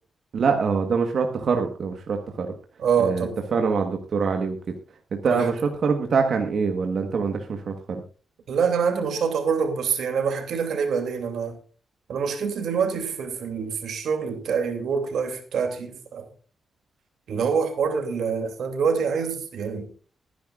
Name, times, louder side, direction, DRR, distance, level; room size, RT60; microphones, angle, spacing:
voice 1, 0.3-2.5 3.0-8.0, right 5 dB, 60° right, 1.4 m, -25 dB
voice 2, 2.8-3.4 5.2-5.5 8.5-11.6 12.1-16.3 17.3-19.9, right 6 dB, 85° right, 2.7 m, -25 dB
22.0 x 10.5 x 2.5 m
wide cardioid pair, 125°, 0 cm